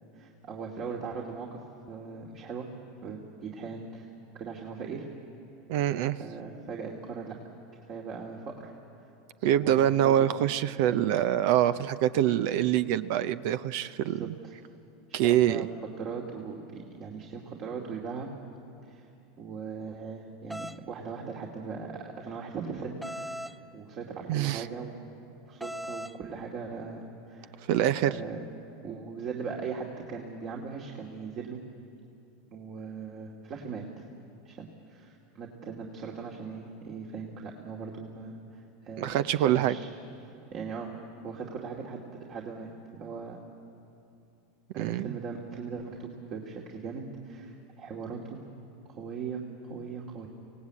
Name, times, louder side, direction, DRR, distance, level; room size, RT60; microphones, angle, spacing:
voice 1, 0.1-1.6 1.9-2.7 3.0-4.1 4.3-5.1 6.2-7.4 7.8-8.7 9.6-10.3 10.8-11.0 14.0-14.5 15.1-15.7 16.0-18.3 18.9-19.1 19.4-23.4 23.7-24.9 25.5-27.6 28.1-28.5 28.8-31.6 32.5-34.0 34.4-39.9 40.2-40.9 41.2-42.0 42.3-43.4 44.7-48.4 48.9-50.3, right 5 dB, 50° right, -1 dB, 2.5 m, -39 dB
voice 2, 5.7-6.2 9.4-14.3 15.1-15.7 24.3-24.7 27.7-28.1 39.0-39.8 44.8-45.1, right 11 dB, 65° right, 14 dB, 0.6 m, -25 dB
sound 1, 20.5-20.8 23.0-23.6 25.6-26.2, equal, 5° right, 0.7 m, -38 dB
25.5 x 17.5 x 8.5 m, 2.7 s
hypercardioid pair, 95°, 0 cm